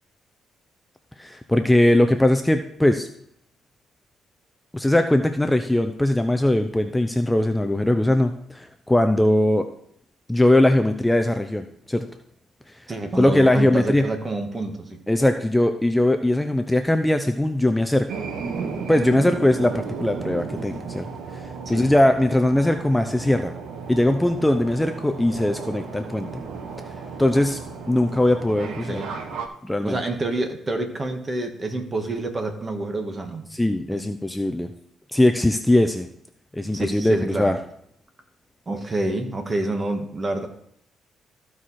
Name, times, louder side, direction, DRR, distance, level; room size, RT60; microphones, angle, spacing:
voice 1, 1.2-3.1 4.7-9.7 10.3-12.0 12.7-12.8 13.2-14.0 15.1-18.1 18.9-21.1 21.3-23.5 23.9-26.4 27.2-27.6 27.9-29.0 29.6-30.0 33.5-34.7 35.1-36.1 36.5-37.6, left 1 dB, 10° left, 7 dB, 0.6 m, -20 dB
voice 2, 12.9-15.0 21.6-21.9 28.6-29.1 29.8-33.5 33.9-34.0 36.7-37.5 38.7-40.5, right 2 dB, 30° right, 4 dB, 1.8 m, -28 dB
sound 1, 18.1-29.5, right 5 dB, 75° right, 1.2 m, -34 dB
14.5 x 4.8 x 4.3 m, 0.70 s
cardioid pair, 90°, 0 cm